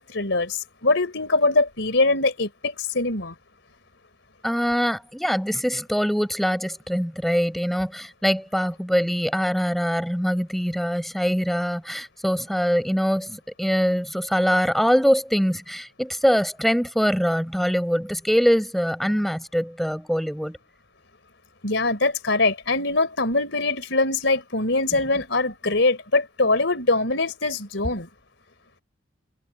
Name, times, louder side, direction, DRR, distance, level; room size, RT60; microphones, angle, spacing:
voice 1, 0.0-3.3 21.6-28.1, left 3 dB, 65° left, 4.3 m, -23 dB
voice 2, 4.4-20.6, equal, ahead, 5.0 m, -23 dB
head